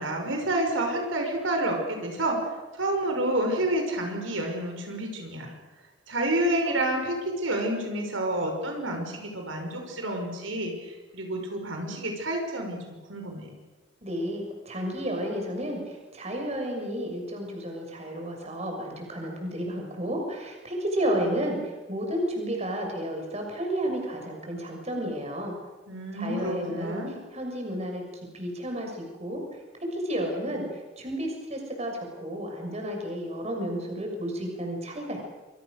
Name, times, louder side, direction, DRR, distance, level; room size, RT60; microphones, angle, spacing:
voice 1, 0.0-2.4 2.7-5.5 6.1-13.5 25.9-27.2, right 1 dB, 85° right, 3 dB, 5.8 m, -29 dB
voice 2, 14.0-15.8 16.1-21.6 21.9-25.5 26.2-27.0 27.3-28.0 28.3-29.4 29.9-30.6 31.0-35.2, equal, 35° right, 2 dB, 6.6 m, -31 dB
28.0 x 25.5 x 6.7 m, 1.2 s
head